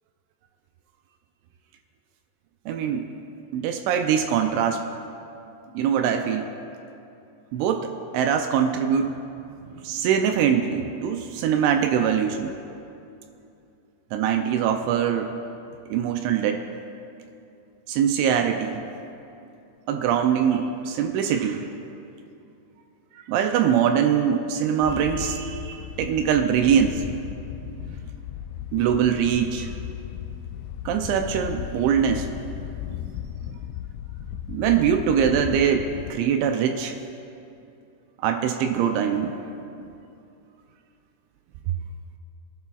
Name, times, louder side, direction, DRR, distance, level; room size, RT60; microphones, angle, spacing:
voice 1, 2.7-3.1 3.5-4.8 5.7-6.5 7.5-9.2 9.6-12.5 14.1-15.3 15.9-16.6 17.9-18.8 19.9-21.7 23.3-27.0 28.7-29.7 30.9-32.3 34.5-36.9 38.2-39.3 39.8-39.9, right 8 dB, 80° right, 5 dB, 2.8 m, -23 dB
Wind, 24.8-36.1, left 10 dB, 85° left, 3.0 m, -36 dB
24.0 x 11.0 x 2.4 m, 2.7 s
omnidirectional pair, 5.4 m